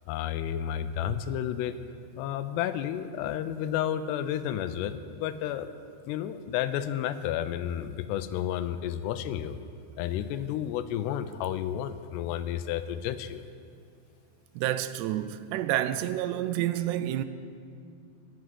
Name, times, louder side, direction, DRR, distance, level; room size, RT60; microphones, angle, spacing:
voice 1, 0.1-1.8 2.2-5.7 6.1-9.6 10.0-13.4, left 10 dB, 85° left, 2.6 m, -31 dB
voice 2, 14.6-17.2, right 13 dB, 85° right, 2.8 m, -29 dB
15.5 x 6.2 x 9.8 m
omnidirectional pair, 4.9 m